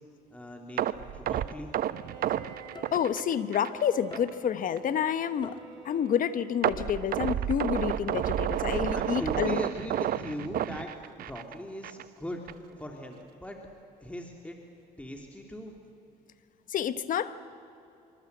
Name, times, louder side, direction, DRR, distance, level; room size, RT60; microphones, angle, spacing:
voice 1, 0.3-1.7 8.9-10.9 11.2-13.6 14.0-14.6 15.0-15.8, equal, 10° left, 2 dB, 2.7 m, -40 dB
sound 1, 0.8-3.8 4.1-4.3 4.8-4.9 6.6-11.5 11.8-12.0 12.5-12.6, right 11 dB, 60° right, 0.9 m, -30 dB
Bowed string instrument, 1.7-6.8, right 6 dB, 85° right, 4.7 m, -50 dB
sound 2, 2.7-3.4 4.1-4.7 5.4-6.0 6.8-7.4 8.1-8.7, left 4 dB, 25° left, 2.3 m, -48 dB
voice 2, 2.9-5.6 5.8-9.6 16.7-17.4, left 8 dB, 55° left, 13 dB, 1.3 m, -29 dB
26.5 x 24.5 x 8.1 m, 2.7 s
cardioid pair, 110°, 17 cm